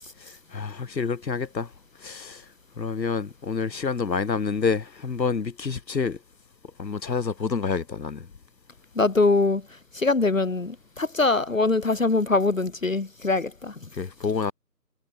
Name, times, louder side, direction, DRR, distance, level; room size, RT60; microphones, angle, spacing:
voice 1, 0.2-1.7 2.0-2.4 2.8-6.2 6.8-8.3 13.9-14.5, left 5 dB, 80° left, 1.1 m, -28 dB
voice 2, 9.0-13.8, left 3 dB, 50° left, 2.0 m, -23 dB
figure-of-eight pair, 165°, 50 cm